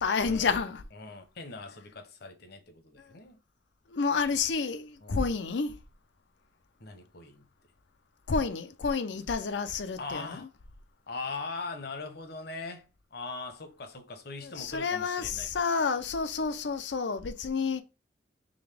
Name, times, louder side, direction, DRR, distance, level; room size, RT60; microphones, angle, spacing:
voice 1, 0.0-0.8 3.9-5.7 8.3-10.5 14.4-17.8, left 5 dB, 90° left, 0.6 m, -30 dB
voice 2, 0.9-3.4 5.0-5.3 6.8-7.5 10.0-10.5 11.1-12.9 13.1-15.5, left 3 dB, 60° left, 0.9 m, -41 dB
3.9 x 3.4 x 3.4 m
head